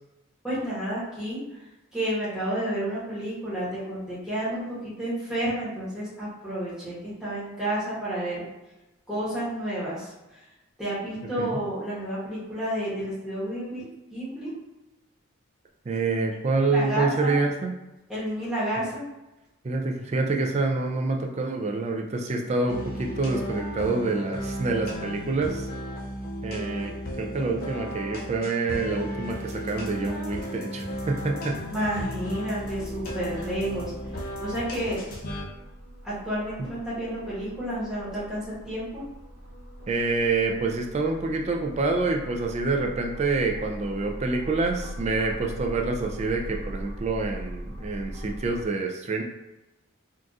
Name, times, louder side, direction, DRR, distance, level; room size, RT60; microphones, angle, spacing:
voice 1, 0.4-1.4 1.9-8.4 9.1-10.4 10.8-14.5 16.6-17.4 18.1-19.0 31.7-33.9 34.4-35.0 36.0-39.0, right 1 dB, 5° right, -10 dB, 1.0 m, -31 dB
voice 2, 15.9-17.7 19.6-25.7 26.4-31.9 39.9-49.2, right 3 dB, 30° right, 2 dB, 0.3 m, -27 dB
sound 1, 22.7-35.4, equal, 45° left, 0.5 m, -35 dB
sound 2, 29.3-35.2, left 1 dB, 85° left, 0.9 m, -46 dB
sound 3, 32.6-48.7, right 1 dB, 50° right, 1.2 m, -41 dB
3.9 x 2.4 x 2.4 m, 1.0 s
head